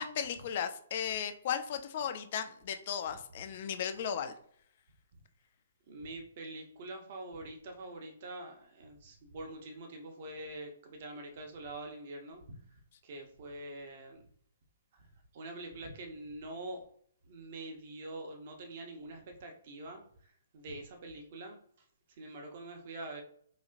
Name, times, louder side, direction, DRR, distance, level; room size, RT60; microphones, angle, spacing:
voice 1, 0.0-4.3, left 8 dB, 40° left, 8 dB, 0.4 m, -36 dB
voice 2, 5.9-12.6 13.0-14.2 14.9-15.1 15.3-16.9 17.2-21.6 22.2-23.2, right 2 dB, 40° right, 3 dB, 0.8 m, -45 dB
4.0 x 2.8 x 2.5 m, 0.62 s
figure-of-eight pair, 125°, 0 cm